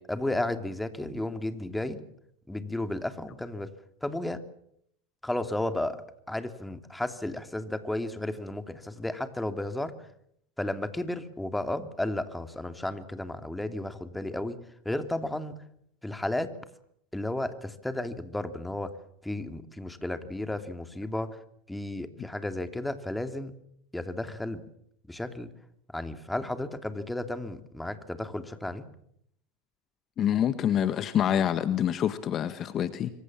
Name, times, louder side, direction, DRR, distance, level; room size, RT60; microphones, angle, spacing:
voice 1, 0.1-2.0 2.5-3.7 4.0-4.4 5.2-6.0 6.3-9.9 10.6-14.6 14.8-15.6 16.0-16.5 17.1-18.9 19.2-21.4 21.7-23.5 23.9-24.6 25.1-25.5 25.9-28.8, left 1 dB, 5° left, 9 dB, 3.0 m, -33 dB
voice 2, 30.2-33.1, left 10 dB, 40° left, 12 dB, 1.6 m, -26 dB
25.5 x 25.0 x 7.5 m, 0.72 s
hypercardioid pair, 80°, 0 cm